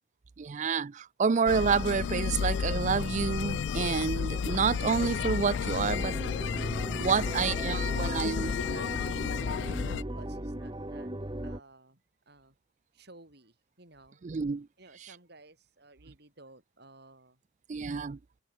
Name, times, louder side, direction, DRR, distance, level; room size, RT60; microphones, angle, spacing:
voice 1, 0.4-6.2 6.9-8.5 14.2-14.7 17.7-18.2, right 5 dB, 40° right, 0.4 m, -29 dB
sound 1, 1.5-10.0, left 6 dB, 65° left, 0.3 m, -32 dB
sound 2, 5.9-11.6, right 1 dB, 25° right, 1.6 m, -37 dB
voice 2, 7.3-8.9 9.5-11.1 11.4-12.6 12.9-14.3 14.8-17.4, right 2 dB, 60° right, 7.7 m, -53 dB
open air
head